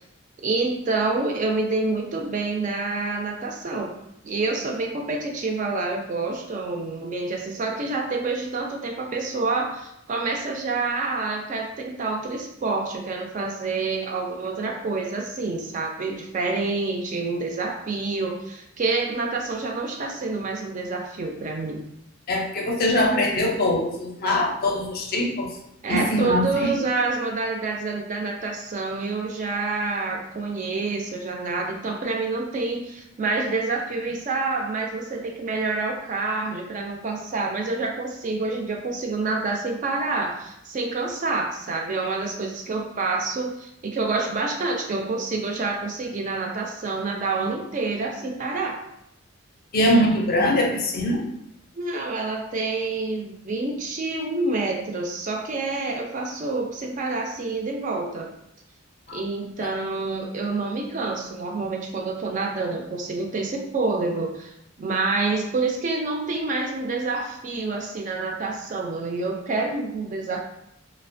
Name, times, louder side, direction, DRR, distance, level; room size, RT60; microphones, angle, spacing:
voice 1, 0.4-3.9 4.2-21.8 25.8-48.8 51.7-58.3 59.1-70.4, right 3 dB, 35° right, 1 dB, 0.3 m, -27 dB
voice 2, 22.3-25.5 25.9-26.8 49.7-51.2 59.1-59.2, left 1 dB, 45° left, 0 dB, 0.5 m, -22 dB
2.8 x 2.1 x 2.5 m, 0.79 s
head